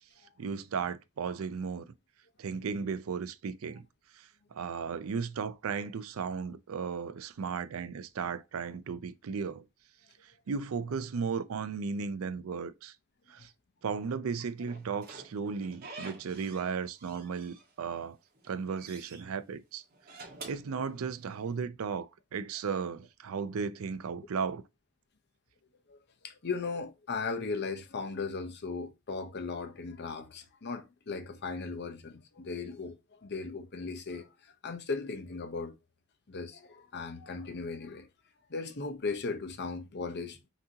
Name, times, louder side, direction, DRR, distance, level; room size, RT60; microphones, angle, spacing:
voice 1, 0.4-1.9 2.4-3.8 4.1-9.6 10.2-12.9 13.3-13.5 13.8-18.2 18.5-19.8 20.4-24.6, right 5 dB, 70° right, 0.4 m, -35 dB
Slam / Squeak, 14.7-16.7 17.0-18.0 18.3-19.2 19.9-21.4, right 3 dB, 45° right, 1.3 m, -48 dB
voice 2, 26.2-35.8 36.3-38.1 38.5-40.4, left 4 dB, 50° left, 0.7 m, -37 dB
5.9 x 2.8 x 2.8 m
head